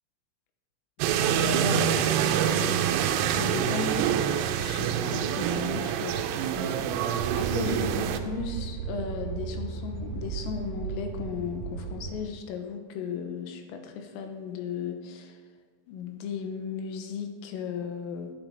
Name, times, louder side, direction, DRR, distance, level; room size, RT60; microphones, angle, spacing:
sound 1, 1.0-8.2, right 9 dB, 90° right, 3.5 m, -26 dB
voice 1, 1.4-2.5 3.4-4.1 4.4-7.0 7.3-15.4 15.9-18.3, left 6 dB, 85° left, 6 dB, 3.8 m, -36 dB
sound 2, 7.2-12.3, right 6 dB, 60° right, 3.3 m, -36 dB
12.0 x 11.0 x 4.7 m, 1.5 s
omnidirectional pair, 5.9 m